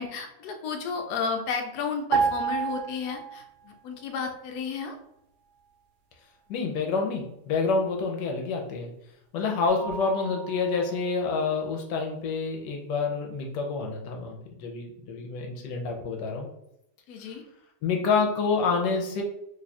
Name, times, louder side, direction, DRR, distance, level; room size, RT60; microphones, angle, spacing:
voice 1, 0.0-5.0 10.2-10.3 17.1-17.4, left 5 dB, 70° left, 4 dB, 1.1 m, -33 dB
sound 1, 2.1-3.7 4.0-4.2, right 6 dB, 70° right, 1.0 m, -28 dB
voice 2, 6.5-8.9 9.3-16.5 17.8-19.2, left 4 dB, 85° left, 1 dB, 1.3 m, -28 dB
Mallet percussion, 9.7-11.5, right 4 dB, 15° right, 0.7 m, -41 dB
3.1 x 2.3 x 4.0 m, 0.79 s
omnidirectional pair, 1.9 m